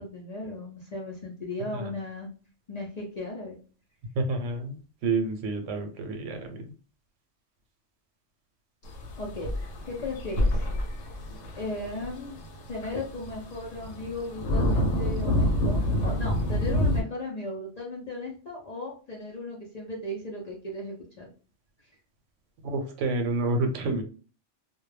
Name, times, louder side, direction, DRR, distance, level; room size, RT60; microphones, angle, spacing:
voice 1, 0.0-2.3 2.7-3.6 9.2-9.5 9.8-10.6 11.5-12.4 12.7-21.3, left 2 dB, 55° left, -3 dB, 0.4 m, -36 dB
voice 2, 4.2-6.7 22.6-24.0, right 3 dB, 85° right, 5 dB, 0.9 m, -29 dB
sound 1, 8.8-17.0, left 1 dB, 90° left, 1.0 m, -28 dB
2.2 x 2.1 x 3.1 m, 0.37 s
omnidirectional pair, 1.3 m